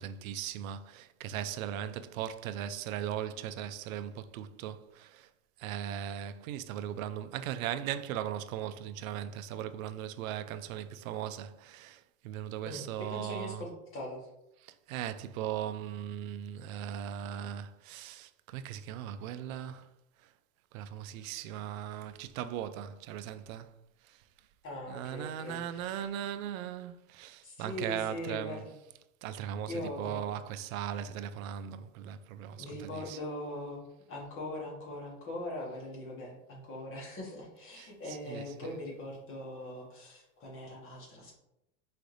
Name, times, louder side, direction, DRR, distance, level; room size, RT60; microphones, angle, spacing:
voice 1, 0.0-5.3 5.6-13.6 14.6-19.9 20.7-23.7 24.0-24.2 24.9-28.6 29.2-33.2 37.8-37.9 38.3-38.4, right 10 dB, 80° right, 0.5 m, -38 dB
voice 2, 12.6-14.3 24.6-26.0 27.4-28.6 29.7-30.3 32.5-41.4, left 1 dB, 30° left, 1.4 m, -41 dB
4.9 x 3.3 x 2.6 m
supercardioid pair, 145°, 40 cm